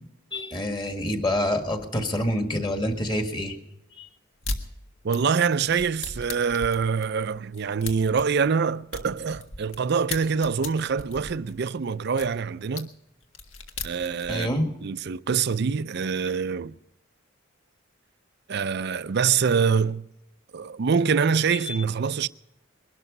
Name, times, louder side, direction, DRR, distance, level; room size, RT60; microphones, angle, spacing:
voice 1, 0.3-3.6 4.0-4.1 14.3-14.7 21.6-21.8, left 1 dB, 20° left, 1.8 m, -27 dB
sound 1, 4.4-4.6 5.1-9.8 10.1-12.3 12.8-12.9 13.2-14.4, left 3 dB, 65° left, 1.7 m, -36 dB
voice 2, 5.0-12.9 13.8-14.5 14.8-16.8 18.5-20.1 20.5-22.3, right 6 dB, 50° right, 0.4 m, -25 dB
22.0 x 12.5 x 5.3 m
head